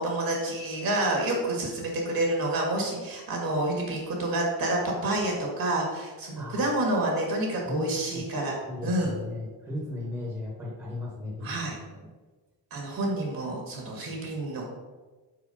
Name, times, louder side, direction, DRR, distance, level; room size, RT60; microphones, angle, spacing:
voice 1, 0.0-8.6 8.8-9.1 11.4-11.8 12.7-14.7, right 1 dB, 50° right, 0 dB, 1.8 m, -28 dB
voice 2, 6.3-6.7 7.7-8.3 8.6-11.5 11.9-12.1, left 2 dB, 5° right, -4 dB, 1.0 m, -36 dB
4.7 x 4.6 x 5.5 m, 1.3 s
cardioid pair, 180°, 44 cm